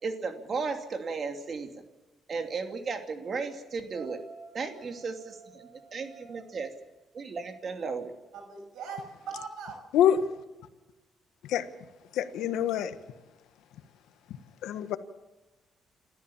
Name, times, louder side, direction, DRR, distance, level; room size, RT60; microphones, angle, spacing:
voice 1, 0.0-1.7 2.3-4.2 4.5-6.7 7.1-8.1, right 4 dB, 45° right, 6 dB, 2.9 m, -35 dB
voice 2, 3.9-6.4 8.3-9.8, right 5 dB, 80° right, 5 dB, 6.4 m, -44 dB
voice 3, 9.9-10.3 11.4-11.7 12.1-13.0 14.6-15.0, left 9 dB, 85° left, 11 dB, 1.3 m, -25 dB
28.5 x 13.5 x 7.2 m, 1.1 s
cardioid pair, 90°, 0 cm